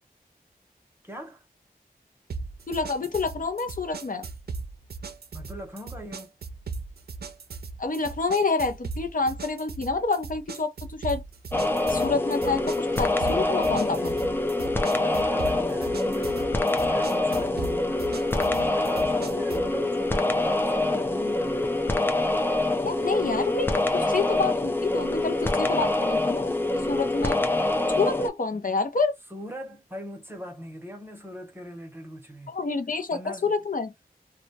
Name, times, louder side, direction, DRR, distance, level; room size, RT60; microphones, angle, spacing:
voice 1, 1.0-1.4 5.3-6.3 12.5-12.6 13.3-14.4 14.9-21.9 28.5-28.7 29.3-32.5 33.1-33.5, equal, 15° right, 0.8 m, -40 dB
sound 1, 2.3-19.7, right 4 dB, 80° right, 0.4 m, -38 dB
voice 2, 2.7-4.3 7.8-11.2 11.9-14.1 22.8-27.4 28.0-29.1 32.5-33.9, left 4 dB, 60° left, 0.6 m, -28 dB
sound 2, 11.5-28.3, left 2 dB, 15° left, 0.4 m, -25 dB
2.2 x 2.1 x 2.7 m
wide cardioid pair, 80°, 16 cm